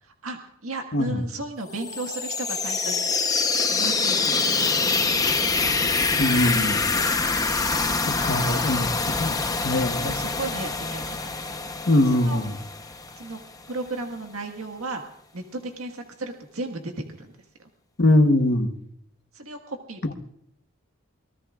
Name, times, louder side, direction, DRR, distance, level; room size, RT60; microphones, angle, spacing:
voice 1, 0.0-3.2 3.7-5.3 8.4-8.6 10.0-11.6 12.0-12.4 13.2-13.4 13.7-15.0 15.3-17.3 19.3-20.1, right 2 dB, 85° right, 3 dB, 1.7 m, -35 dB
sound 1, 1.7-13.4, left 4 dB, 15° left, 0.9 m, -25 dB
voice 2, 6.2-6.8 8.1-8.9 9.2-10.1 11.9-12.5 18.0-18.7 20.1-20.2, left 1 dB, 50° left, 6 dB, 1.2 m, -22 dB
25.0 x 18.5 x 2.5 m, 0.74 s
head